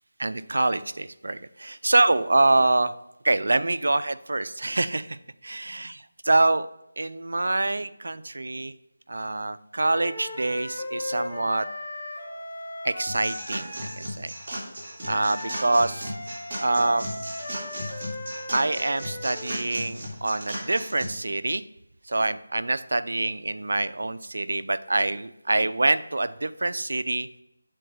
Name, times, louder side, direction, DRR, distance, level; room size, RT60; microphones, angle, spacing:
voice 1, 0.2-2.9 3.2-5.2 5.4-6.7 7.0-8.7 9.1-11.7 12.8-14.3 15.1-16.1 16.6-17.1 18.5-21.6 22.1-27.3, right 2 dB, 70° right, 14 dB, 0.4 m, -25 dB
sound 1, 9.8-14.1 15.0-19.6, left 1 dB, 35° left, 1.6 m, -38 dB
sound 2, 13.1-21.1, equal, 35° right, 2.2 m, -36 dB
7.7 x 4.0 x 4.9 m, 0.82 s
figure-of-eight pair, 165°, 0 cm